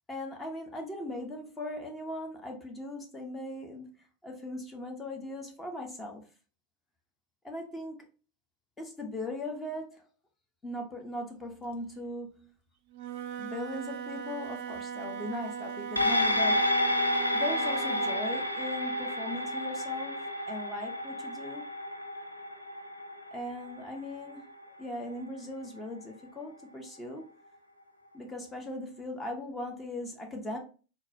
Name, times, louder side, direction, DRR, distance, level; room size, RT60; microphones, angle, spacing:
voice 1, 0.1-3.9 4.2-6.2 7.4-8.1 8.8-10.1 10.6-12.5 13.4-16.7 17.3-20.2 20.5-21.7 23.3-24.4 24.8-27.3 28.1-30.6, left 1 dB, 15° left, 0.6 m, -39 dB
Wind instrument woodwind instrument, 12.9-18.3, right 7 dB, 50° right, 0.4 m, -39 dB
sound 1, 16.0-24.6 25.0-25.1, left 1 dB, 85° left, 0.4 m, -30 dB
3.8 x 2.2 x 2.6 m
figure-of-eight pair, 90°, 0 cm